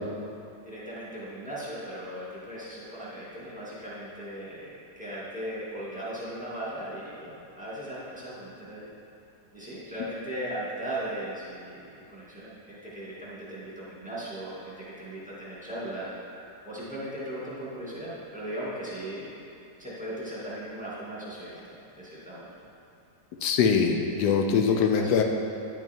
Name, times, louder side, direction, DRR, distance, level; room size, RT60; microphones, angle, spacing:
voice 1, 0.6-8.9 9.5-16.1 16.6-19.4 19.8-22.5 24.7-25.2, right 1 dB, 5° right, -9 dB, 2.1 m, -38 dB
voice 2, 23.4-25.2, left 6 dB, 85° left, 3 dB, 1.2 m, -23 dB
10.0 x 5.9 x 4.4 m, 2.6 s
omnidirectional pair, 1.7 m